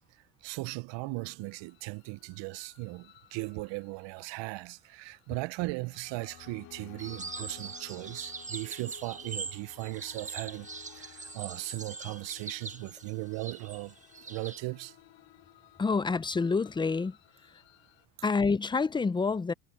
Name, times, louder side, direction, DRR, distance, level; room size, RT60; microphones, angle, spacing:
voice 1, 0.4-13.9 14.3-14.9, right 24 dB, 65° right, 0.7 m, -38 dB
sound 1, 1.2-18.1, left 17 dB, 65° left, 2.9 m, -56 dB
sound 2, 7.0-14.6, right 4 dB, 15° right, 1.3 m, -42 dB
voice 2, 15.8-17.2 18.2-19.5, left 4 dB, 10° left, 0.4 m, -27 dB
cardioid pair, 120°, 48 cm